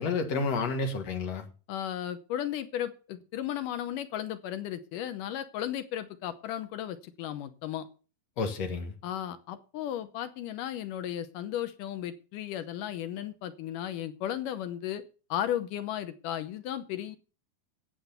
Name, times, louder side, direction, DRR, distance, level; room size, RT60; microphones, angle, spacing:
voice 1, 0.0-1.5 8.4-8.9, left 4 dB, 55° left, 2.4 m, -30 dB
voice 2, 1.7-7.9 9.0-15.0 15.3-17.2, left 11 dB, 75° left, 2.3 m, -35 dB
10.0 x 8.1 x 6.8 m
omnidirectional pair, 4.2 m